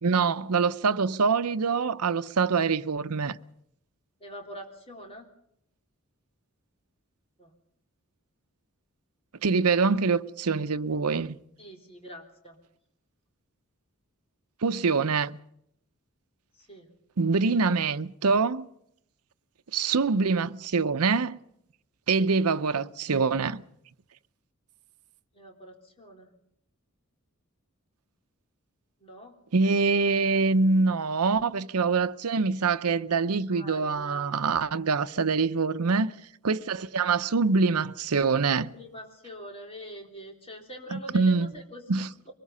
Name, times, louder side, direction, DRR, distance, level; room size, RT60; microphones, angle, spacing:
voice 1, 0.0-3.4 9.4-11.4 14.6-15.4 17.2-18.7 19.7-21.4 22.1-23.6 29.5-36.1 36.4-38.7 40.9-41.5 41.9-42.1, right 4 dB, 90° right, 0.7 m, -25 dB
voice 2, 4.2-5.3 7.4-7.5 11.6-12.6 16.6-16.9 25.3-26.3 29.0-29.3 33.5-34.4 38.5-42.3, equal, 25° left, 3.6 m, -44 dB
23.5 x 21.0 x 5.5 m
head